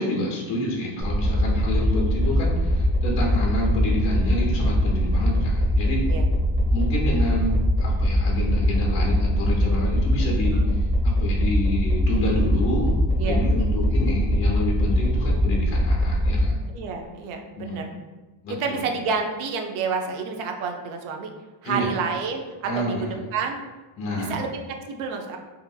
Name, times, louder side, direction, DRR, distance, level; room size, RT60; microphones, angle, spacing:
voice 1, 0.0-6.1 6.7-16.6 17.6-17.8 18.4-18.8 21.6-21.9 22.6-23.1 24.0-24.3, left 1 dB, 30° left, -3 dB, 0.5 m, -28 dB
sound 1, 1.0-16.5, equal, 25° right, 0.7 m, -22 dB
voice 2, 16.7-17.9 18.5-21.3 21.6-23.6 24.1-25.4, right 5 dB, 85° right, 3 dB, 0.5 m, -29 dB
2.7 x 2.5 x 2.2 m, 1.2 s
cardioid pair, 155°, 48 cm